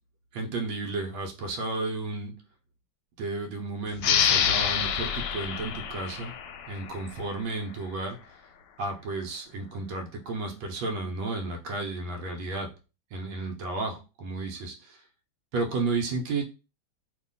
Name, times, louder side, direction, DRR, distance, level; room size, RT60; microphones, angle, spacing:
voice 1, 0.3-2.3 3.2-6.3 6.7-8.2 8.8-12.7 13.1-15.0 15.5-16.4, right 3 dB, 85° right, 3 dB, 1.4 m, -32 dB
sound 1, 4.0-7.3, left 8 dB, 75° left, 1.1 m, -27 dB
2.8 x 2.7 x 3.6 m, 0.31 s
omnidirectional pair, 2.1 m